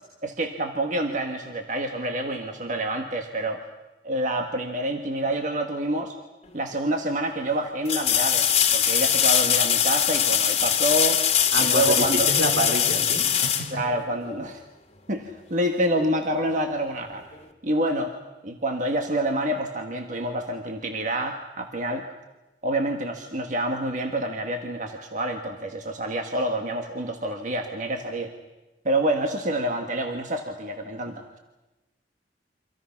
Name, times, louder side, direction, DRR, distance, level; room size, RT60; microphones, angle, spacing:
voice 1, 0.2-3.6 4.0-6.2 6.5-11.2 11.6-12.3 13.7-14.6 15.1-17.2 17.6-18.1 18.4-22.0 22.6-28.3 28.8-31.4, right 1 dB, 45° right, 4 dB, 1.6 m, -27 dB
sound 1, 6.5-6.6 7.8-14.5 17.3-17.4, left 9 dB, 35° left, 2.0 m, -22 dB
voice 2, 11.5-13.7, right 1 dB, 80° right, 3 dB, 4.4 m, -27 dB
28.5 x 25.5 x 5.9 m, 1.1 s
head